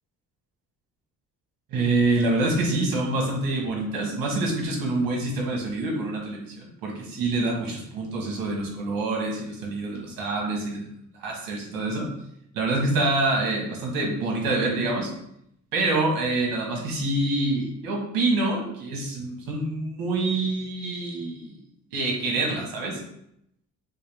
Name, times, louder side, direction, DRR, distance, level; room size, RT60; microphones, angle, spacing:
voice 1, 1.7-10.9 11.1-12.1 12.5-15.1 15.7-21.6 21.9-23.0, right 2 dB, 85° right, -1 dB, 1.6 m, -26 dB
6.5 x 2.3 x 3.5 m, 0.76 s
cardioid pair, 125°, 34 cm